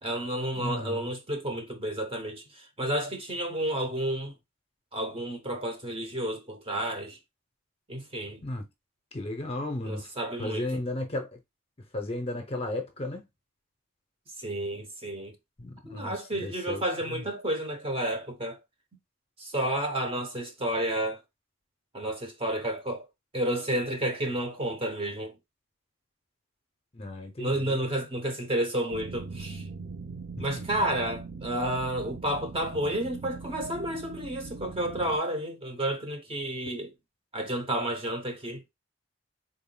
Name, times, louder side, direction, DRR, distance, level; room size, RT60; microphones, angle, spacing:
voice 1, 0.0-4.3 4.9-7.2 7.9-8.4 9.8-10.7 14.4-15.3 15.8-18.6 19.4-21.2 21.9-23.1 23.3-25.3 27.4-29.6 30.4-36.9 37.3-38.6, right 1 dB, 25° right, 0.8 m, -31 dB
voice 2, 0.5-1.1 8.4-8.7 9.1-10.1 10.4-11.4 11.9-13.3 15.6-17.2 26.9-27.8 30.6-30.7, left 1 dB, 25° left, 0.6 m, -34 dB
sound 1, 28.9-35.2, right 4 dB, 50° right, 0.5 m, -41 dB
3.8 x 3.5 x 2.2 m
head